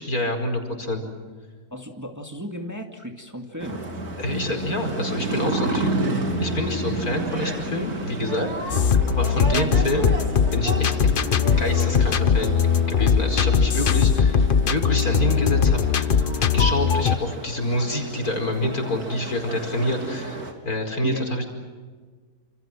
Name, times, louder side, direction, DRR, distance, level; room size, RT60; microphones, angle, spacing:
voice 1, 0.1-1.0 4.2-5.9 6.4-8.8 9.1-10.1 10.5-11.2 11.6-16.2 16.5-21.5, left 1 dB, 70° left, 4 dB, 5.5 m, -27 dB
voice 2, 1.7-3.8 9.4-9.7 21.0-21.4, equal, 10° right, 3 dB, 2.3 m, -34 dB
sound 1, 3.6-20.5, right 2 dB, 75° right, 3.7 m, -31 dB
sound 2, 8.7-17.2, left 6 dB, 40° left, 0.9 m, -20 dB
29.0 x 27.5 x 6.3 m, 1.5 s
omnidirectional pair, 1.6 m